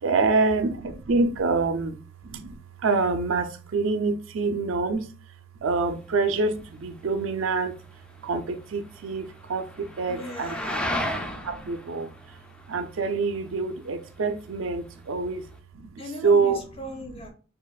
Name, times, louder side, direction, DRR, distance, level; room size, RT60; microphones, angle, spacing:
voice 1, 0.0-5.1 5.6-7.8 8.2-10.5 11.2-12.1 12.7-15.4 15.7-16.6, right 4 dB, 85° right, 0.5 m, -26 dB
sound 1, 5.7-15.6, left 1 dB, 5° left, 0.4 m, -37 dB
voice 2, 10.1-11.0 16.0-17.3, left 1 dB, 30° left, 0.8 m, -38 dB
4.8 x 2.5 x 2.3 m
head